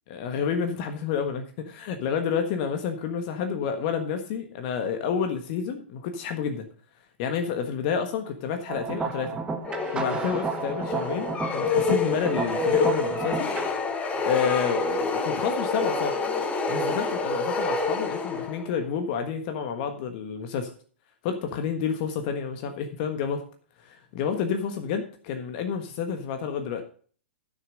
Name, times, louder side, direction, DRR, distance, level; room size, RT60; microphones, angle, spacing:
voice 1, 0.1-6.7 7.2-9.4 9.9-13.5 14.2-16.2 16.7-20.7 21.2-23.4 23.8-26.8, left 7 dB, 45° left, 6 dB, 1.4 m, -29 dB
sound 1, 8.7-13.7, right 5 dB, 15° right, 1.3 m, -32 dB
sound 2, 9.7-18.8, left 3 dB, 20° left, 1.5 m, -27 dB
11.0 x 6.5 x 5.2 m, 0.43 s
hypercardioid pair, 115°, 6 cm